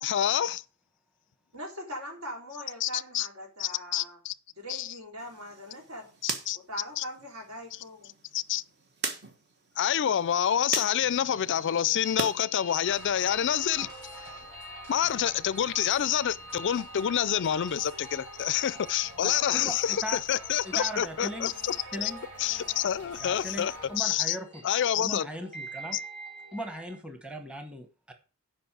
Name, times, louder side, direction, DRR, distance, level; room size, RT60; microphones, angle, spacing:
voice 1, 0.0-0.6 2.8-3.3 3.6-4.3 4.7-4.9 6.2-6.6 7.0-7.1 8.3-8.6 9.8-13.9 14.9-22.1 22.4-24.4 24.6-25.3 25.9-26.0, left 10 dB, 55° left, 0.4 m, -27 dB
voice 2, 1.5-4.2 4.5-6.1 6.5-8.1, equal, 70° right, 3.2 m, -41 dB
sound 1, 5.2-12.4 12.8-13.9, right 4 dB, 50° right, 1.4 m, -40 dB
sound 2, 11.0-27.0, equal, 30° right, 4.1 m, -47 dB
sound 3, 12.8-24.0, right 2 dB, 85° right, 3.2 m, -46 dB
voice 3, 19.2-20.2 20.6-21.5 21.9-22.2 23.2-24.6 25.0-26.0 26.5-28.1, equal, 5° right, 1.2 m, -38 dB
7.8 x 5.4 x 7.3 m
head